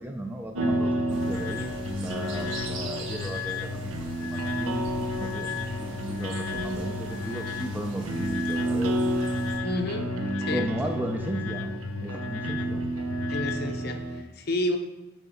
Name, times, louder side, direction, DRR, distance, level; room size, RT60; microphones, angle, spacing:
voice 1, 0.0-4.8 5.2-9.0 10.5-11.7 12.0-12.8, right 1 dB, 10° right, 3 dB, 0.5 m, -35 dB
sound 1, 0.6-13.6, left 8 dB, 75° left, 0.4 m, -37 dB
sound 2, 0.6-14.2, right 1 dB, 85° right, 0.8 m, -31 dB
sound 3, 1.1-9.6, right 2 dB, 65° right, 1.3 m, -43 dB
voice 2, 9.6-10.1 10.4-10.7 13.3-14.8, left 1 dB, 50° left, 5 dB, 0.7 m, -30 dB
9.1 x 4.7 x 4.3 m, 1.0 s
head